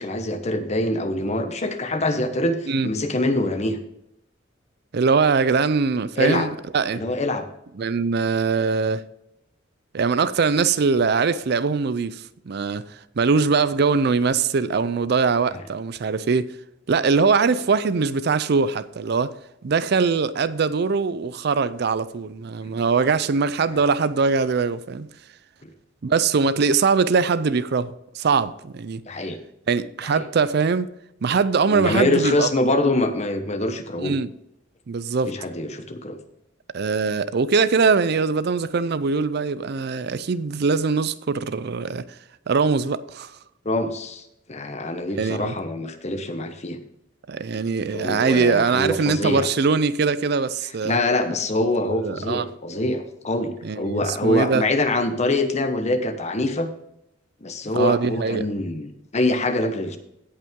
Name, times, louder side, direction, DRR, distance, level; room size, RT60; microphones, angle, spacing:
voice 1, 0.0-3.8 6.2-6.5 6.9-7.4 15.5-15.6 22.6-22.7 25.6-25.7 29.0-29.4 30.1-30.2 31.7-34.1 35.3-36.2 43.6-44.2 44.5-46.8 47.9-49.5 50.8-56.7 57.4-60.0, left 2 dB, 35° left, 1.0 m, -24 dB
voice 2, 4.9-7.0 7.8-9.0 9.9-16.5 16.9-19.3 19.6-25.1 26.0-29.0 29.7-30.9 31.2-32.5 34.0-34.3 34.9-35.3 36.7-42.0 42.5-43.3 45.1-45.5 47.3-51.0 51.9-52.4 53.6-54.6 57.7-58.5, right 5 dB, 55° right, 0.5 m, -22 dB
16.5 x 5.6 x 3.7 m
head